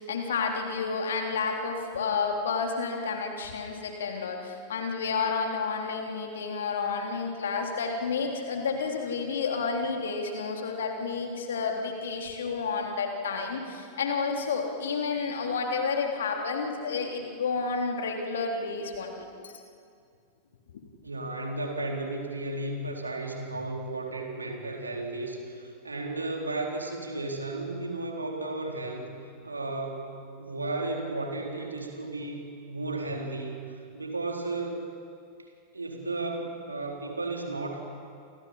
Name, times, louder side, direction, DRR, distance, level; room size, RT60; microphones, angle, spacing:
voice 1, 0.0-19.5, left 4 dB, 65° left, 2 dB, 3.6 m, -30 dB
voice 2, 21.0-29.1 29.4-34.8 35.4-35.5 35.7-37.8, right 2 dB, 80° right, 1 dB, 4.2 m, -34 dB
29.0 x 28.0 x 5.7 m, 2.3 s
figure-of-eight pair, 90°, 0 cm